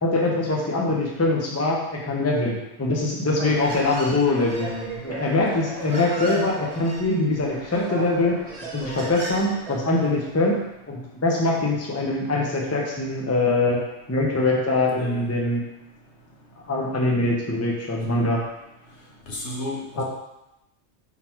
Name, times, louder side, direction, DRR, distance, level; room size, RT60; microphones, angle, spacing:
voice 1, 0.0-4.7 5.0-8.4 8.7-10.6 10.9-13.8 14.1-15.6 16.7-18.4 20.0-20.1, left 2 dB, 15° left, -1 dB, 0.7 m, -23 dB
Human voice, 3.3-10.4, right 1 dB, 35° right, 0.8 m, -36 dB
voice 2, 4.6-5.0 14.9-15.3 18.1-18.3 19.3-20.0, left 1 dB, 70° left, -2 dB, 1.4 m, -34 dB
5.6 x 4.0 x 4.5 m, 0.91 s
omnidirectional pair, 1.2 m